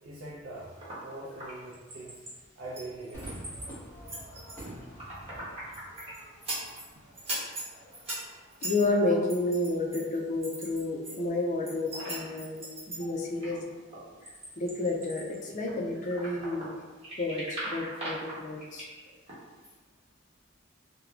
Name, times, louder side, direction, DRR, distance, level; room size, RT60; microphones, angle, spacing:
voice 1, 0.0-0.8 1.0-2.3 2.6-3.3 13.0-13.1, right 2 dB, 85° right, -6 dB, 0.5 m, -42 dB
sound 1, 0.6-2.3 2.7-3.7 4.1-6.9 7.1-11.2 11.5-16.7 17.0-19.4 19.6-19.7, right 1 dB, 30° right, 1.0 m, -40 dB
Crowd / Fireworks, 3.1-9.7, right 1 dB, 10° left, 1.2 m, -48 dB
voice 2, 8.6-12.6 13.0-13.6 14.2-16.7 17.2-18.9, left 2 dB, 40° left, -1 dB, 0.4 m, -30 dB
3.5 x 2.1 x 2.3 m, 1.3 s
head